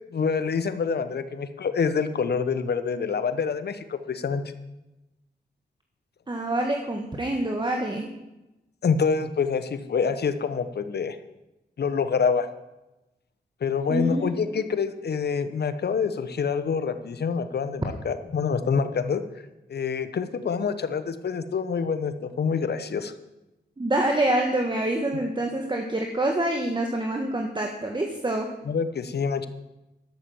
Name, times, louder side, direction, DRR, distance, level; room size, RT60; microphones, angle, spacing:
voice 1, 0.1-4.4 8.8-11.2 11.8-12.5 13.6-19.2 19.7-23.1 28.7-29.5, left 5 dB, 65° left, 11 dB, 1.0 m, -26 dB
voice 2, 6.3-8.1 13.9-14.6 23.8-28.5, right 1 dB, 25° right, 2 dB, 1.5 m, -26 dB
12.0 x 6.9 x 7.6 m, 0.98 s
cardioid pair, 55°, 18 cm